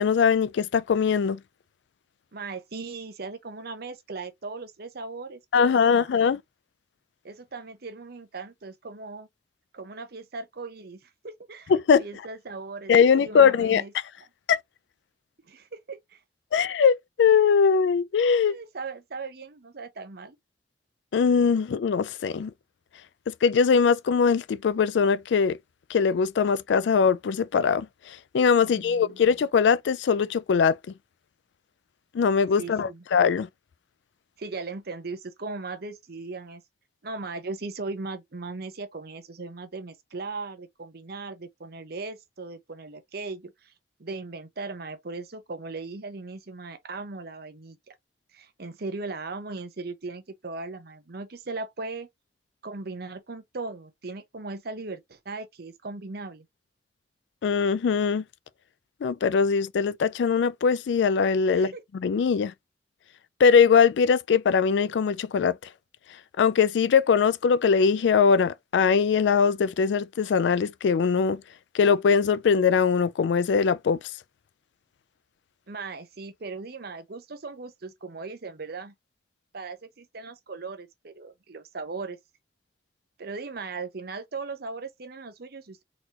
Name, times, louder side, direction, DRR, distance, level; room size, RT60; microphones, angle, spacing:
voice 1, 0.0-1.4 5.5-6.4 11.7-12.0 12.9-13.8 14.5-14.6 16.5-18.6 21.1-22.5 23.3-25.6 25.9-30.8 32.1-33.5 57.4-58.2 59.0-62.5 63.4-65.6 66.4-71.4 71.7-74.0, left 6 dB, 85° left, 0.4 m, -21 dB
voice 2, 2.3-6.1 7.2-9.3 9.7-13.9 15.5-16.2 18.4-20.4 28.6-29.2 32.6-33.0 34.4-36.6 37.0-43.7 44.0-47.9 48.3-52.1 52.6-56.5 61.5-61.8 75.7-78.9 79.5-82.2 83.2-85.8, right 3 dB, 60° right, 0.8 m, -38 dB
4.0 x 2.8 x 2.9 m
head